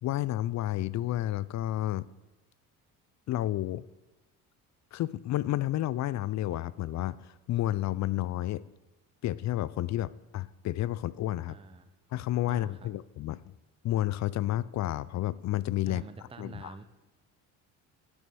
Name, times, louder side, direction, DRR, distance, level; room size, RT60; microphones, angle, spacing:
voice 1, 0.0-2.1 3.3-3.9 4.9-8.6 9.2-11.6 12.1-13.4 13.8-16.0 16.4-16.7, left 14 dB, 45° left, 19 dB, 0.4 m, -31 dB
voice 2, 11.5-11.9 12.5-12.9 15.8-16.8, right 3 dB, 15° right, 9 dB, 0.7 m, -45 dB
9.4 x 6.1 x 6.2 m, 1.2 s
hypercardioid pair, 65°, 42 cm